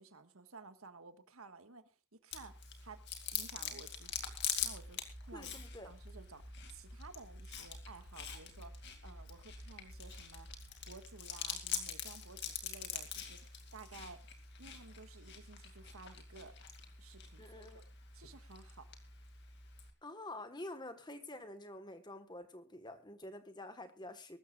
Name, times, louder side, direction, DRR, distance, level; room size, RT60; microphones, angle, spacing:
voice 1, 0.0-3.0 3.3-4.2 4.6-6.4 6.7-10.6 10.8-14.2 14.6-16.6 17.0-17.8 18.1-18.9, right 4 dB, 80° right, 8 dB, 1.6 m, -55 dB
Chewing mastication, 2.3-19.9, left 8 dB, 55° left, 2.3 m, -45 dB
sound 1, 4.0-10.9, right 1 dB, 60° right, 2.6 m, -55 dB
voice 2, 5.3-5.9 17.4-17.8 20.0-24.4, left 1 dB, 20° left, 9 dB, 1.4 m, -48 dB
23.0 x 13.0 x 2.4 m, 0.30 s
head